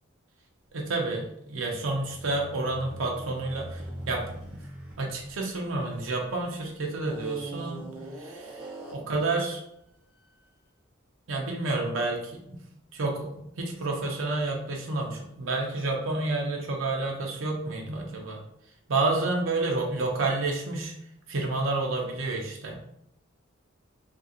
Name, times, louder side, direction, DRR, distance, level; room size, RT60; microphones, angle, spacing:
voice 1, 0.7-4.6 5.0-7.9 8.2-9.6 11.3-12.6 12.9-18.4 18.9-20.9 21.3-22.8, right 2 dB, 70° right, 0 dB, 0.6 m, -30 dB
sound 1, 1.6-6.4 7.0-9.2, right 1 dB, 10° right, 0.8 m, -42 dB
2.8 x 2.5 x 2.8 m, 0.77 s
head